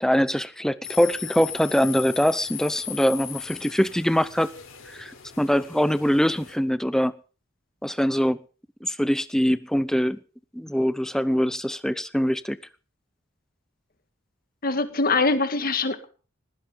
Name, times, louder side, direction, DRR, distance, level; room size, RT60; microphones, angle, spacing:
voice 1, 0.0-4.5 4.9-7.1 7.8-8.4 8.8-10.2 10.5-12.6, equal, 5° left, 0.7 m, -23 dB
sound 1, 0.8-6.6, left 9 dB, 85° left, 4.6 m, -38 dB
voice 2, 14.6-16.1, left 3 dB, 45° left, 1.8 m, -23 dB
19.5 x 16.0 x 4.0 m
head